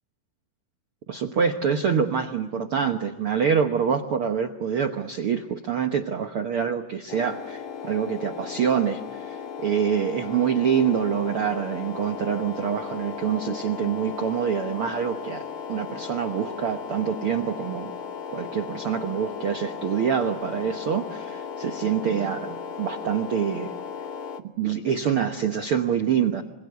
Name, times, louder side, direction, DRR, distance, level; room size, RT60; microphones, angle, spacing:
voice 1, 1.1-17.9 18.3-23.7 24.6-26.4, right 7 dB, 75° right, 6 dB, 1.2 m, -26 dB
sound 1, 7.1-24.4, left 7 dB, 75° left, 1.2 m, -36 dB
26.0 x 26.0 x 8.2 m, 0.94 s
omnidirectional pair, 4.1 m